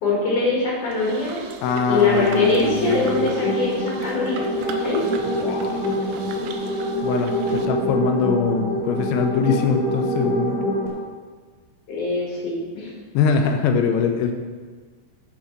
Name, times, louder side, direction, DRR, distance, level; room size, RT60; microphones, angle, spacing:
voice 1, 0.0-1.5 1.9-5.0 11.9-12.9, left 3 dB, 55° left, -4 dB, 2.5 m, -23 dB
sound 1, 0.9-7.7, right 6 dB, 80° right, 2.9 m, -40 dB
sound 2, 1.4-10.9, equal, ahead, 1.9 m, -25 dB
voice 2, 1.6-3.3 5.4-6.0 7.0-10.6 13.1-14.3, left 5 dB, 80° left, 5 dB, 2.9 m, -23 dB
10.5 x 5.4 x 5.9 m, 1.5 s
omnidirectional pair, 5.6 m